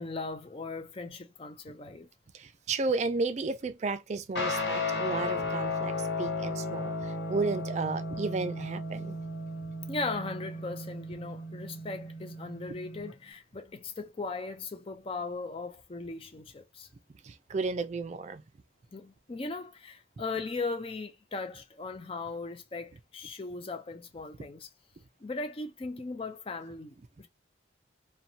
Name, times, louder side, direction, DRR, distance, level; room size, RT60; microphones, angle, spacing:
voice 1, 0.0-2.1 9.9-16.9 18.9-24.7 25.2-27.3, left 3 dB, 30° left, 0.4 m, -38 dB
voice 2, 2.3-9.2 17.2-18.4, right 3 dB, 35° right, 0.3 m, -33 dB
Guitar, 4.4-13.1, left 2 dB, 60° left, 1.1 m, -34 dB
2.6 x 2.2 x 2.7 m
head